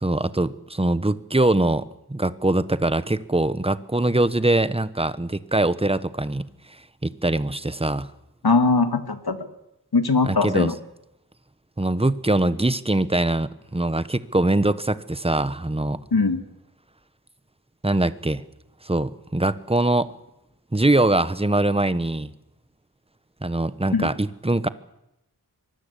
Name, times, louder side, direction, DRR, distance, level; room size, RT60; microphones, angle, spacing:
voice 1, 0.0-6.5 7.0-8.1 10.2-10.7 11.8-16.0 17.8-18.4 18.8-20.1 20.7-22.3 23.4-24.7, right 2 dB, 15° right, 14 dB, 1.1 m, -22 dB
voice 2, 8.4-9.4 9.9-10.7 16.1-16.4 23.9-24.1, left 4 dB, 65° left, 9 dB, 2.3 m, -20 dB
24.5 x 20.0 x 8.4 m, 0.87 s
wide cardioid pair, 65°, 39 cm